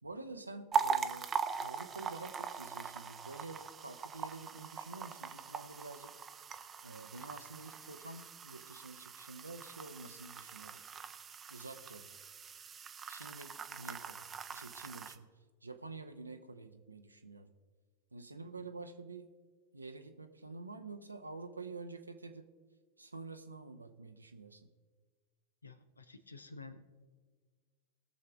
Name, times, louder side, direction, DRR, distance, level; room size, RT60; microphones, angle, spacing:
voice 1, 0.0-1.3 1.6-6.1 6.8-10.8 11.5-12.1 13.1-14.2 14.5-15.3 15.6-17.5 18.1-19.3 19.7-22.5 23.0-24.7, right 3 dB, 80° right, 7 dB, 0.7 m, -48 dB
sound 1, 0.7-15.2, right 6 dB, 20° right, 0.6 m, -41 dB
voice 2, 25.6-26.9, left 3 dB, 80° left, 11 dB, 0.8 m, -51 dB
19.0 x 6.7 x 3.6 m, 1.4 s
figure-of-eight pair, 90°, 0 cm